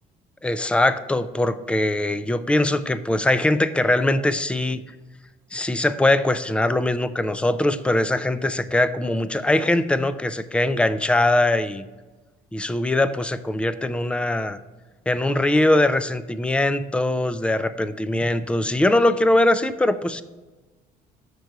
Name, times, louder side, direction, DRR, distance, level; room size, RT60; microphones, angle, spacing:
voice 1, 0.4-4.8 5.5-11.9 12.5-14.6 15.1-20.2, left 1 dB, 5° left, 13 dB, 0.3 m, -21 dB
6.6 x 4.7 x 4.5 m, 1.2 s
cardioid pair, 110°, 17 cm